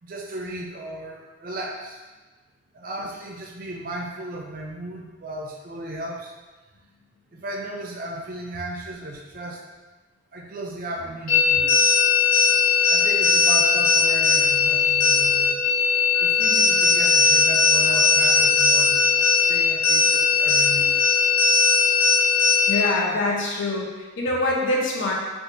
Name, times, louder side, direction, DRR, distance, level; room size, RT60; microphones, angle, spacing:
voice 1, 0.0-2.0 2.7-6.3 7.3-9.6 10.3-11.8 12.9-15.6 16.2-20.9, right 1 dB, 45° right, 0 dB, 0.5 m, -35 dB
sound 1, 11.3-22.9, left 4 dB, 45° left, 0.9 m, -19 dB
voice 2, 22.7-23.9 24.2-25.1, left 2 dB, 75° left, -2 dB, 0.6 m, -24 dB
4.2 x 2.4 x 2.6 m, 1.2 s
head